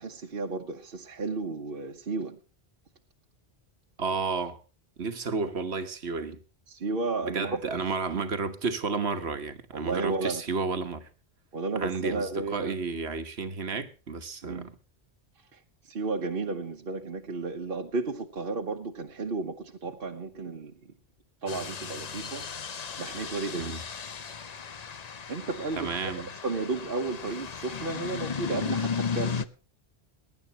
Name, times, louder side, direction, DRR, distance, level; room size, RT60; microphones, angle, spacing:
voice 1, 0.0-2.4 6.7-7.6 9.7-10.4 11.5-12.7 14.4-14.7 15.5-15.6 15.8-20.8 21.4-22.5 23.0-23.8 25.3-26.1 26.4-29.5, right 3 dB, 60° right, 1.3 m, -33 dB
voice 2, 4.0-4.6 5.0-6.4 7.2-11.1 11.7-14.7 23.6-23.8 25.8-26.3, right 4 dB, 85° right, 1.6 m, -32 dB
sound 1, 21.5-29.5, left 6 dB, 45° left, 0.8 m, -35 dB
22.5 x 11.0 x 3.0 m
omnidirectional pair, 1.1 m